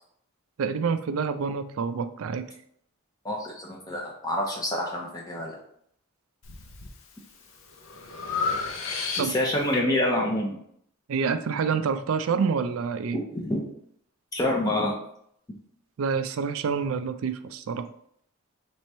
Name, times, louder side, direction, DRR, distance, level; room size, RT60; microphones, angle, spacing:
voice 1, 0.6-2.5 9.2-9.3 11.1-13.2 16.0-17.8, right 5 dB, 75° right, 10 dB, 0.4 m, -27 dB
voice 2, 3.2-5.6 9.2-10.6 13.1-13.7 14.3-14.9, left 1 dB, 15° left, -2 dB, 0.5 m, -27 dB
Breathing, 6.4-6.9 7.4-9.6, left 4 dB, 70° left, 0.6 m, -31 dB
3.4 x 3.0 x 4.2 m, 0.69 s
head